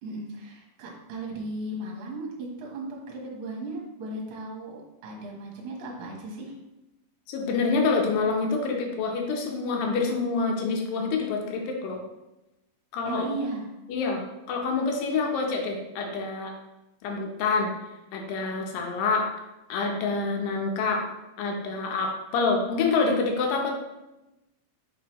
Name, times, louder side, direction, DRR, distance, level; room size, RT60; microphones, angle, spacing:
voice 1, 0.0-6.5 13.0-13.7, right 2 dB, 55° right, -2 dB, 1.6 m, -36 dB
voice 2, 7.3-12.0 12.9-13.3 13.9-14.2 14.5-16.5 17.0-17.7 18.1-19.3 19.7-21.0 21.4-23.7, left 4 dB, 75° left, 1 dB, 2.5 m, -27 dB
6.2 x 5.1 x 3.0 m, 0.96 s
omnidirectional pair, 4.2 m